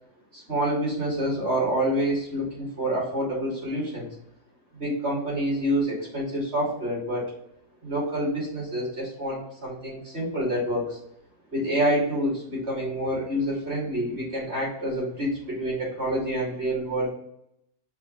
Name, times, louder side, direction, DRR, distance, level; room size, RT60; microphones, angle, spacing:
voice 1, 0.3-4.1 4.7-7.2 7.8-11.0 11.5-17.1, equal, 40° right, -4 dB, 3.2 m, -27 dB
5.6 x 4.7 x 4.2 m, 0.76 s
omnidirectional pair, 1.6 m